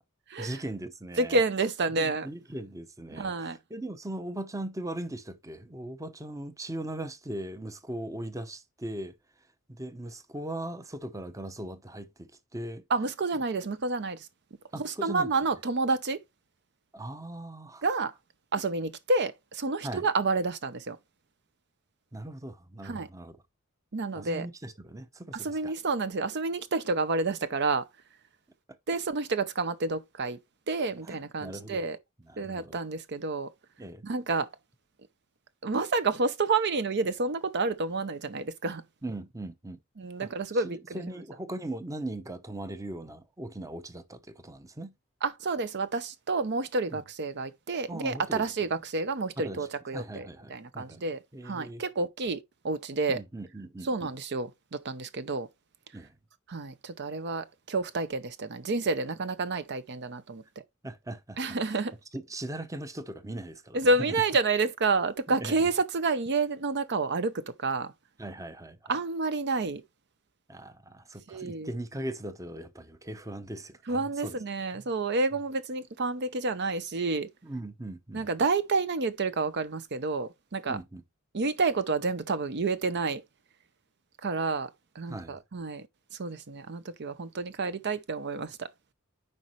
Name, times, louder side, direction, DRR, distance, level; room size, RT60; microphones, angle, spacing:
voice 1, 0.4-1.4 2.0-9.1 9.7-12.8 14.7-15.3 16.9-17.8 19.8-20.1 22.1-23.4 24.1-25.7 31.0-31.8 32.2-32.8 33.8-34.0 39.0-39.8 40.2-44.9 46.9-47.0 47.9-48.5 49.4-51.0 51.3-51.8 53.1-54.1 55.9-56.2 60.8-61.4 61.6-61.8 62.1-64.2 65.3-65.7 68.2-69.0 70.5-74.4 74.7-74.9 77.4-78.3 80.7-81.0 85.1-85.4, right 1 dB, 15° right, 0.7 m, -39 dB
voice 2, 1.2-2.3 3.1-3.6 12.9-14.3 14.8-16.2 17.8-18.1 18.5-21.0 22.8-23.1 23.9-24.5 25.3-27.8 28.9-30.4 30.7-32.0 32.4-33.5 34.0-34.5 35.6-38.8 40.0-41.0 45.2-52.4 52.6-53.2 53.9-55.5 56.5-60.4 61.4-61.9 63.7-67.9 68.9-69.8 71.3-71.7 73.9-77.3 78.1-80.8 81.3-83.2 84.2-84.7 84.9-85.9 86.2-88.7, right 3 dB, 55° right, 0.7 m, -29 dB
9.7 x 5.2 x 3.0 m
head